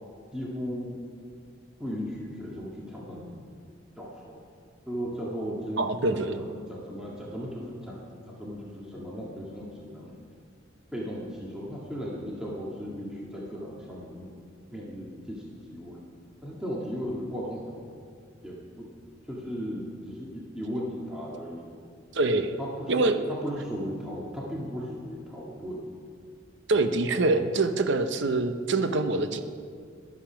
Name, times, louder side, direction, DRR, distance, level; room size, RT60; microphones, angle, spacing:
voice 1, 0.3-1.0 1.8-3.4 4.0-4.4 4.9-5.9 6.3-8.0 8.3-10.2 10.9-14.3 14.7-16.0 16.4-17.8 18.4-18.9 19.2-21.7 22.6-25.9 26.7-26.9, equal, 5° right, -6 dB, 2.0 m, -36 dB
voice 2, 5.8-6.4 22.1-22.6 22.9-23.3 26.7-29.4, right 3 dB, 65° right, 8 dB, 0.8 m, -25 dB
22.0 x 8.3 x 5.8 m, 2.2 s
head